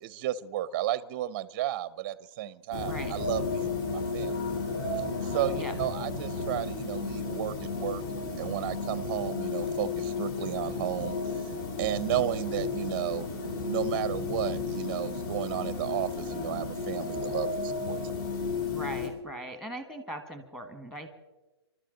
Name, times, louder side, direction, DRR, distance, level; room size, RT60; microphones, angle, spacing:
voice 1, 0.0-4.4 5.2-8.0 8.4-11.4 11.8-13.3 13.7-18.1, right 13 dB, 30° right, 17 dB, 0.6 m, -33 dB
sound 1, 2.7-19.1, left 4 dB, 45° left, 3.7 m, -33 dB
voice 2, 2.8-3.2 5.6-5.7 18.7-21.1, right 1 dB, 5° left, 7 dB, 1.4 m, -39 dB
27.0 x 12.5 x 3.9 m, 1.1 s
hypercardioid pair, 155°, 14 cm